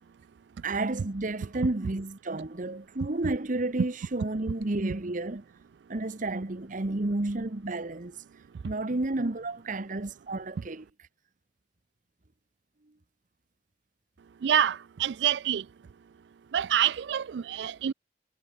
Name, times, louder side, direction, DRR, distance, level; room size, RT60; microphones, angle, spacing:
voice 1, 0.6-5.4 5.9-8.2 8.6-10.8, right 2 dB, 45° right, 1.1 m, -31 dB
voice 2, 14.4-15.6 16.5-17.9, right 10 dB, 70° right, 0.4 m, -26 dB
head